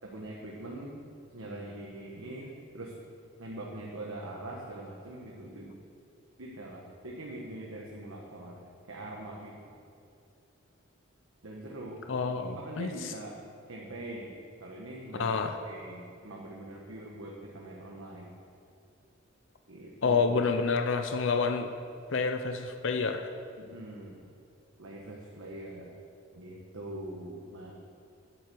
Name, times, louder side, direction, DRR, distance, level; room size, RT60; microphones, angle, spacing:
voice 1, 0.0-1.0 1.3-2.9 3.4-5.8 6.4-9.8 11.4-13.4 13.7-14.3 14.6-18.3 19.7-20.4 23.6-24.2 24.8-25.9 26.3-27.7, right 1 dB, 90° right, -2 dB, 1.3 m, -43 dB
voice 2, 12.1-13.1 15.2-15.6 20.0-21.7 22.1-23.3, left 4 dB, 65° left, 6 dB, 0.6 m, -28 dB
9.4 x 9.2 x 6.8 m, 2.5 s
head